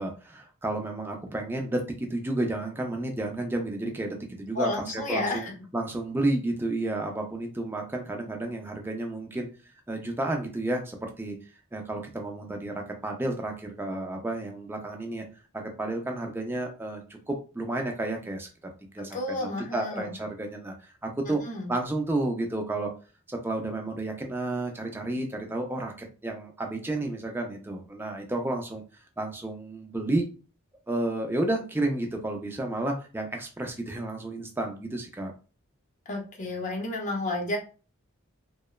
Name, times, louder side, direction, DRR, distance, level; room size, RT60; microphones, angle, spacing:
voice 1, 0.0-9.5 9.9-11.4 11.7-12.7 13.0-15.3 15.5-18.5 18.9-21.4 21.7-22.9 23.3-28.8 29.2-30.2 30.9-35.3, right 2 dB, 10° right, 2 dB, 0.4 m, -31 dB
voice 2, 4.5-5.5 19.1-20.1 21.5-21.7 36.1-37.6, left 2 dB, 35° left, 0 dB, 0.6 m, -31 dB
2.9 x 2.1 x 2.2 m, 0.36 s
head